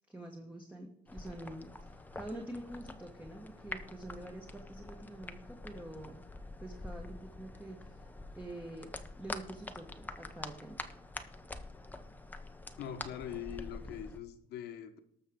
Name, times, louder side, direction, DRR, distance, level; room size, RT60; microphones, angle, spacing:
voice 1, 0.1-6.2 6.6-8.1 8.3-8.9 9.2-10.8, right 1 dB, 5° right, 1.4 m, -46 dB
sound 1, 1.1-14.2, left 2 dB, 10° left, 0.8 m, -46 dB
voice 2, 12.8-15.0, left 9 dB, 75° left, 1.2 m, -42 dB
19.0 x 6.6 x 3.7 m
cardioid pair, 110°, 17 cm